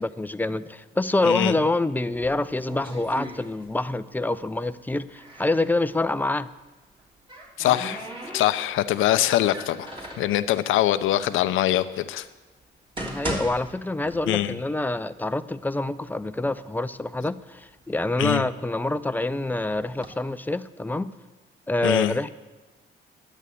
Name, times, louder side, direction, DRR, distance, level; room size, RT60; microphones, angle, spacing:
voice 1, 0.0-6.5 13.0-21.1 21.7-22.3, left 2 dB, 10° left, 12 dB, 0.6 m, -26 dB
voice 2, 1.2-1.5 7.6-8.0 8.3-9.9 10.2-12.2 14.3-14.6 18.2-18.4 21.8-22.1, left 13 dB, 90° left, 11 dB, 0.7 m, -23 dB
sound 1, 2.1-4.0 4.3-5.7 6.8-8.9 9.4-10.4 11.1-11.2 11.9-12.0 12.6-14.6 14.9-15.0 15.7-15.8 16.2-16.9 17.4-19.1 19.7-20.1, right 1 dB, 25° right, 3.3 m, -38 dB
11.0 x 10.0 x 8.4 m, 1.2 s
cardioid pair, 90°, 20 cm